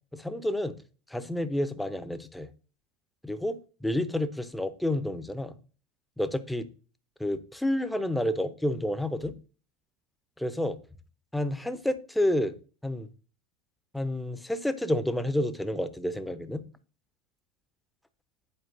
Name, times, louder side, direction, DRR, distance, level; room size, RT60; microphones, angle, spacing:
voice 1, 0.1-0.8 1.1-2.5 3.2-5.6 6.2-6.7 7.2-9.4 10.4-10.8 11.3-12.5 12.8-13.1 13.9-16.6, left 1 dB, 5° left, 12 dB, 0.6 m, -29 dB
10.0 x 4.4 x 2.5 m, 0.39 s
figure-of-eight pair, 75°, 0 cm